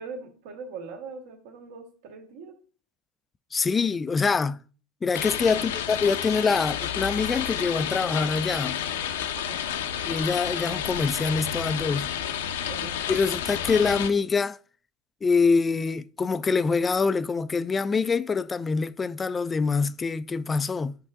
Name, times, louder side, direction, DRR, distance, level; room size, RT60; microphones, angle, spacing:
voice 1, 0.0-2.6 5.5-5.8 9.3-9.6 12.7-13.0, right 4 dB, 70° right, 2.2 m, -41 dB
voice 2, 3.5-4.6 5.0-8.8 10.0-12.1 13.1-14.6 15.2-21.0, left 4 dB, 20° left, 0.4 m, -25 dB
sound 1, 5.1-14.1, left 9 dB, 90° left, 0.8 m, -30 dB
8.4 x 5.5 x 3.7 m
supercardioid pair, 115°, 0 cm